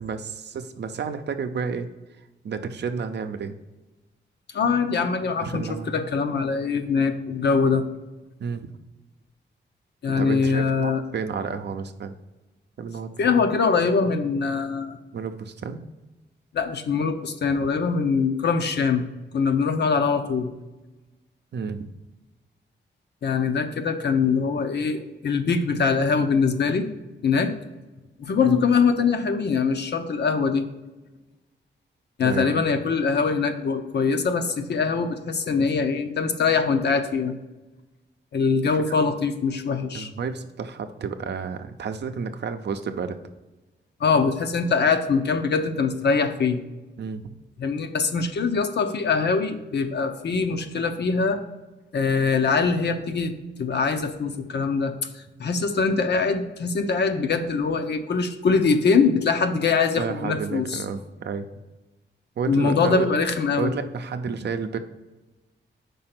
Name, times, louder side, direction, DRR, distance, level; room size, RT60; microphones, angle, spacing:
voice 1, 0.0-1.9 2.4-3.5 5.4-6.1 8.4-8.7 10.1-12.2 12.8-13.1 15.1-15.8 21.5-21.9 28.4-28.6 32.2-32.6 35.6-35.7 38.9-39.0 39.9-43.2 47.0-47.2 60.0-61.5 62.4-63.1 63.6-64.8, right 5 dB, 60° right, 8 dB, 0.6 m, -31 dB
voice 2, 4.5-7.8 10.0-11.0 13.2-15.0 16.5-19.1 19.3-20.5 23.2-26.9 27.2-27.5 28.2-30.7 32.2-37.4 38.3-40.1 44.0-46.6 47.6-51.4 51.9-60.8 62.5-63.7, left 5 dB, 60° left, 7 dB, 0.7 m, -23 dB
5.3 x 4.3 x 5.8 m, 1.1 s
wide cardioid pair, 135°, 19 cm